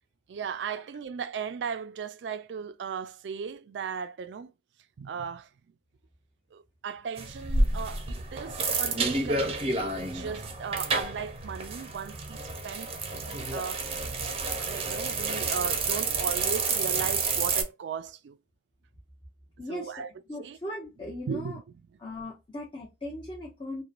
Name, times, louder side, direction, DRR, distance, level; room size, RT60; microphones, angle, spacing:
voice 1, 0.3-4.5 5.0-5.5 6.5-14.1 14.6-18.4 19.7-20.1 20.4-20.6 21.3-21.6, right 6 dB, 85° right, 0.3 m, -37 dB
sound 1, 7.2-17.6, right 3 dB, 35° right, 0.5 m, -30 dB
voice 2, 19.6-21.6 22.0-23.8, left 1 dB, 30° left, 0.8 m, -39 dB
3.0 x 2.2 x 2.4 m
head